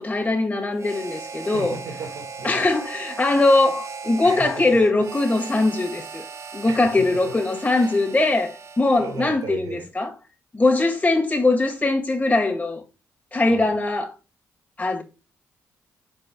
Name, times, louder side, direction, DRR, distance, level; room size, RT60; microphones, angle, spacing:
voice 1, 0.0-1.8 2.4-6.2 6.5-10.1 10.5-12.8 13.3-14.1 14.8-15.0, left 2 dB, 25° left, 2.0 m, -21 dB
Harmonica, 0.7-9.4, right 5 dB, 50° right, 1.2 m, -38 dB
voice 2, 1.4-2.7 3.5-3.7 4.2-4.6 6.7-7.1 7.7-8.2 9.0-9.9 13.5-13.7, right 4 dB, 80° right, 2.1 m, -36 dB
5.5 x 4.8 x 6.3 m
supercardioid pair, 60°, 7 cm